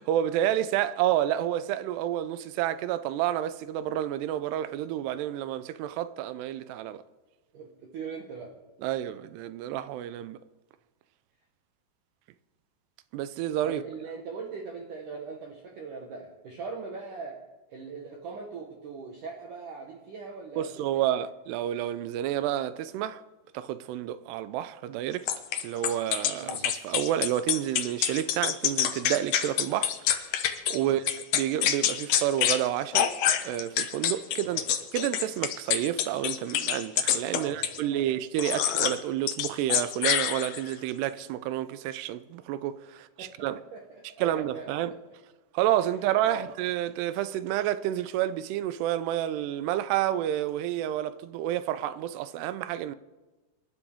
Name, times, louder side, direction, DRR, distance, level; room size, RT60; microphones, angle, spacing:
voice 1, 0.0-7.0 8.8-10.4 13.1-13.8 20.6-23.2 23.5-25.3 25.6-29.9 30.7-33.1 33.4-34.6 34.9-43.6 44.2-44.9 45.5-52.9, right 12 dB, 80° right, 2.5 m, -29 dB
voice 2, 7.5-8.5 13.6-17.4 17.7-21.1 26.4-26.7 34.4-34.6 37.4-38.1 43.2-45.0 46.2-46.5, right 4 dB, 65° right, 2.2 m, -41 dB
sound 1, 25.3-30.8 31.1-32.6 32.9-37.8 38.4-39.0 39.3-40.7, left 10 dB, 90° left, 1.8 m, -26 dB
26.5 x 12.5 x 3.6 m
omnidirectional pair, 5.2 m